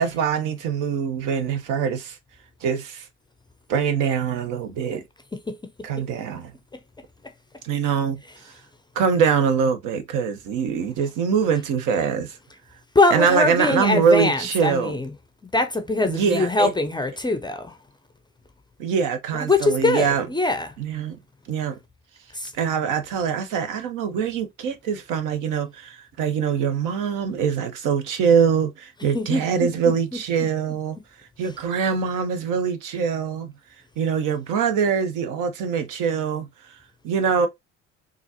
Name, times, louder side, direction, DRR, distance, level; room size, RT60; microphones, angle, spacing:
voice 1, 0.0-2.2 2.6-3.0 3.7-5.0 5.8-6.5 7.6-8.5 9.0-12.4 13.1-15.0 16.1-16.7 18.8-20.3 20.8-21.2 21.5-21.8 22.5-31.0 31.4-33.5 34.0-36.5 37.0-37.5, right 6 dB, 60° right, 0.9 m, -23 dB
voice 2, 12.9-15.1 15.5-17.8 19.3-20.7 22.3-22.5 29.1-30.2, left 2 dB, 10° left, 0.5 m, -23 dB
3.9 x 2.5 x 2.7 m
hypercardioid pair, 60°, 36 cm